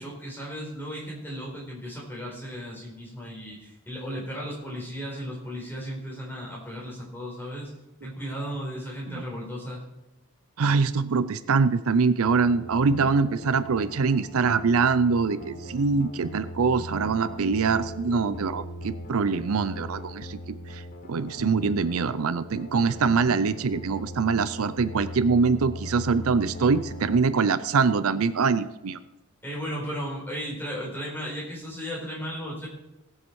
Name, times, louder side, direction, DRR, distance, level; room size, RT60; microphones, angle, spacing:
voice 1, 0.0-7.7 8.0-9.8 29.4-32.7, equal, 10° left, -5 dB, 4.4 m, -35 dB
voice 2, 10.6-20.4 20.7-20.8 21.1-29.0, right 4 dB, 75° right, 14 dB, 0.5 m, -24 dB
sound 1, 12.2-27.2, equal, 35° left, 0.8 m, -40 dB
18.0 x 7.8 x 4.7 m, 0.94 s
head